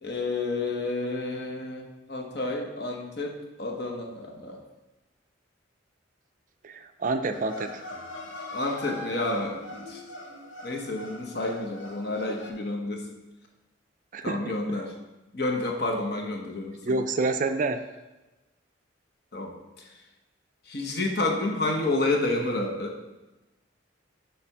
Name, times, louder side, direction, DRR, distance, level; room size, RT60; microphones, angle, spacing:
voice 1, 0.0-4.6 8.5-10.0 10.6-13.0 14.2-14.9 15.3-17.0 19.3-19.9 20.7-23.0, left 2 dB, 55° left, 1 dB, 1.1 m, -30 dB
voice 2, 6.6-7.8 14.1-14.5 16.8-17.8, right 3 dB, 45° right, 8 dB, 0.4 m, -28 dB
sound 1, 7.3-12.5, left 2 dB, 80° left, 0.9 m, -41 dB
7.5 x 3.3 x 6.0 m, 1.1 s
head